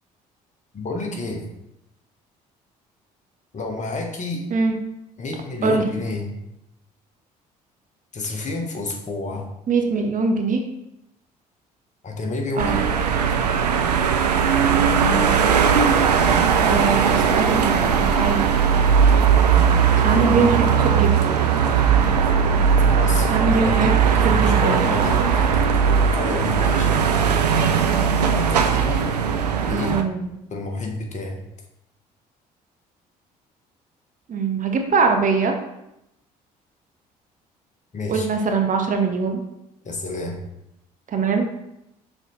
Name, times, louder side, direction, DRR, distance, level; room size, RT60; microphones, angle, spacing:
voice 1, 0.7-1.4 3.5-4.5 5.2-6.4 8.1-9.5 12.0-12.9 19.9-20.6 22.8-27.3 28.4-29.1 29.7-30.0 30.5-31.4 37.9-38.3 39.8-40.4, left 2 dB, 40° left, 1 dB, 1.4 m, -30 dB
voice 2, 9.7-10.6 12.6-12.8 16.6-18.5 20.0-21.4 23.3-23.9 24.2-24.8 29.7-30.4 34.3-35.6 38.1-39.4 41.1-41.5, right 4 dB, 40° right, 4 dB, 1.0 m, -22 dB
sound 1, 12.6-30.0, right 7 dB, 90° right, 0.4 m, -18 dB
5.9 x 4.1 x 4.1 m, 0.84 s
hypercardioid pair, 50°, 20 cm